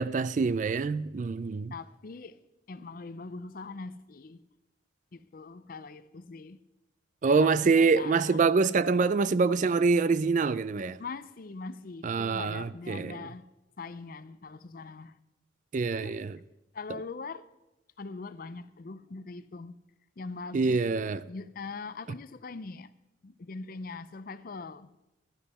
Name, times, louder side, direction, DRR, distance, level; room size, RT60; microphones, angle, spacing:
voice 1, 0.0-1.7 7.2-11.0 12.0-13.2 15.7-16.3 20.5-21.2, right 4 dB, 40° right, 0.3 m, -25 dB
voice 2, 1.7-2.4 2.7-4.4 5.1-6.6 7.3-8.5 11.0-13.5 13.8-15.2 15.9-16.2 16.7-17.5 18.0-19.8 20.2-22.9 23.2-24.9, left 4 dB, 45° left, 0.5 m, -42 dB
15.0 x 11.5 x 4.2 m
head